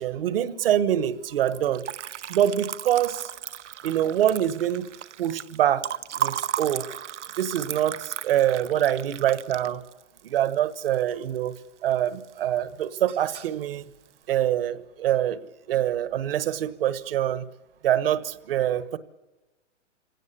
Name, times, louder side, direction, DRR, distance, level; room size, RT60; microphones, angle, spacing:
voice 1, 0.0-1.8 2.3-3.3 3.8-4.9 5.2-5.9 6.1-6.9 7.3-9.8 10.2-11.5 11.8-13.9 14.3-17.5 17.8-19.0, right 11 dB, 50° right, 16 dB, 1.3 m, -25 dB
Liquid, 1.4-11.6 11.9-12.6 12.8-13.6, right 10 dB, 80° right, 0.9 m, -35 dB
25.0 x 17.5 x 8.4 m, 1.1 s
hypercardioid pair, 150°, 35 cm